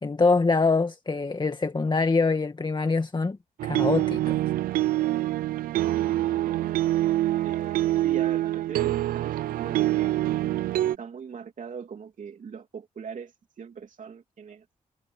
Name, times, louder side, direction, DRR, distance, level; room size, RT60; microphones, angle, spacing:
voice 1, 0.0-3.4 3.6-4.4, left 4 dB, 30° left, 2.0 m, -24 dB
sound 1, 3.6-11.0, right 15 dB, 85° right, 0.5 m, -25 dB
voice 2, 7.4-10.1 10.8-14.6, right 6 dB, 65° right, 3.1 m, -41 dB
supercardioid pair, 55°, 14 cm